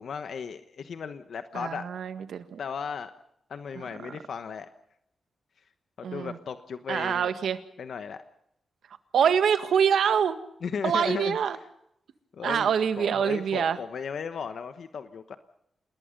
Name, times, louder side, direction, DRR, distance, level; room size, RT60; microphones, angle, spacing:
voice 1, 0.0-1.8 2.6-3.1 3.5-4.7 6.0-7.3 7.8-8.2 10.6-11.4 12.3-12.7 13.0-15.4, left 6 dB, 65° left, 9 dB, 1.2 m, -35 dB
voice 2, 1.5-2.6 6.0-6.4 6.9-7.6 9.1-10.4 10.8-11.6 12.4-13.8, right 7 dB, 85° right, 10 dB, 1.7 m, -25 dB
28.0 x 20.5 x 5.4 m, 0.75 s
wide cardioid pair, 120°, 0 cm